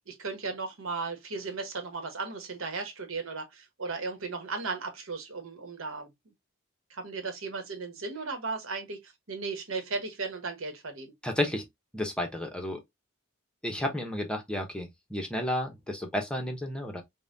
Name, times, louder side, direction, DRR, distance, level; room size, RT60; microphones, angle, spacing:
voice 1, 0.1-6.1 6.9-11.1, right 4 dB, 70° right, 1.1 m, -36 dB
voice 2, 11.2-11.6 11.9-12.8 13.6-17.0, left 1 dB, 5° left, 0.7 m, -32 dB
5.4 x 2.1 x 2.6 m
head